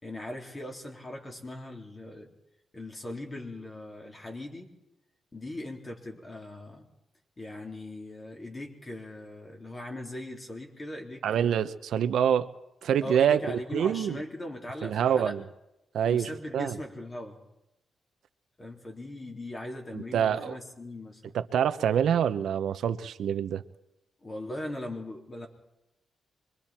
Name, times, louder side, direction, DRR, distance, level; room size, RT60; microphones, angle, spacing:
voice 1, 0.0-2.3 2.7-4.7 5.3-6.9 7.4-11.7 13.0-15.4 16.0-17.4 18.6-21.3 24.2-25.5, left 1 dB, 25° left, 1 dB, 3.8 m, -39 dB
voice 2, 11.2-12.5 12.8-14.2 14.8-15.4 15.9-16.8 19.9-20.6 21.3-23.6, right 9 dB, 85° right, 11 dB, 0.9 m, -26 dB
25.5 x 23.0 x 4.5 m, 0.89 s
cardioid pair, 125°, 0 cm